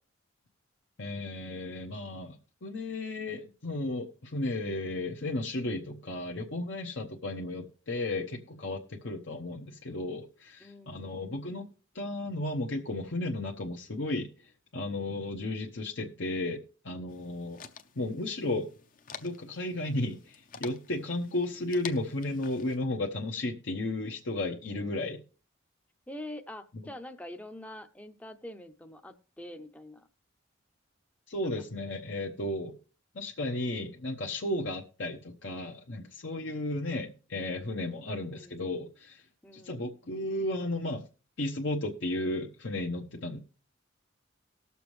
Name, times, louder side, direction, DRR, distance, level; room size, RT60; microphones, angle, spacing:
voice 1, 1.0-2.4 2.6-11.7 11.9-14.3 14.7-17.6 18.0-18.7 19.2-25.2 31.3-32.8 33.1-39.2 39.5-41.0 41.4-43.4, left 2 dB, 65° left, 1 dB, 0.9 m, -34 dB
voice 2, 10.6-11.1 26.1-30.1 31.4-31.7 38.1-38.6 39.4-39.9, left 1 dB, 5° left, 7 dB, 0.6 m, -45 dB
sound 1, 17.1-22.8, left 6 dB, 45° left, 0.7 m, -49 dB
19.0 x 6.9 x 3.1 m, 0.36 s
head